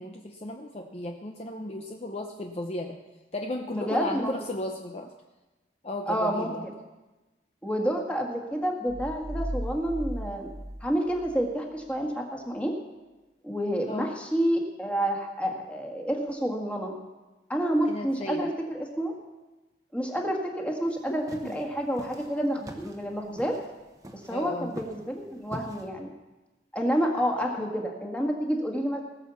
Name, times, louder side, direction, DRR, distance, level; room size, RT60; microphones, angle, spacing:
voice 1, 0.0-3.0 3.3-5.1 5.8-6.6 13.9-14.1 17.9-18.5 21.4-21.5 24.3-24.7 27.6-27.7, left 1 dB, 35° left, 3 dB, 0.7 m, -35 dB
voice 2, 3.7-4.4 6.1-6.5 7.6-10.5 10.8-12.7 13.4-16.9 17.5-19.1 19.9-23.5 24.1-26.1 26.7-29.0, equal, 5° left, 0 dB, 1.7 m, -29 dB
sound 1, 8.9-11.5, equal, 65° right, 1.1 m, -36 dB
sound 2, 20.9-25.9, right 1 dB, 20° right, 1.1 m, -44 dB
18.5 x 6.4 x 7.0 m, 1.1 s
head